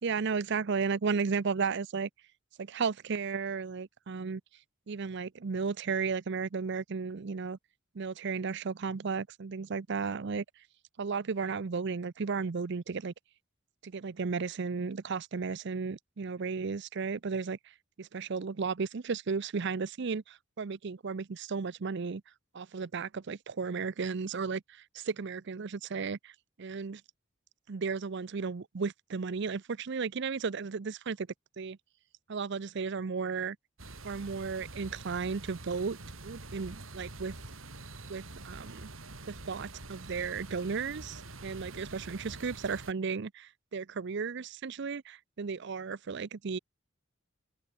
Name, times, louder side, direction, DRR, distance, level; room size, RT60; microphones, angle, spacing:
voice 1, 0.0-2.1 2.6-4.4 4.9-7.6 7.9-10.4 11.0-13.1 13.8-17.6 18.0-20.2 20.6-22.2 22.5-26.3 26.6-27.0 27.7-31.3 31.6-31.8 32.3-33.6 34.0-36.0 36.2-37.4 38.1-38.9 39.3-46.6, right 5 dB, 60° right, 0.6 m, -34 dB
sound 1, 33.8-42.9, right 2 dB, 90° right, 4.3 m, -46 dB
open air
head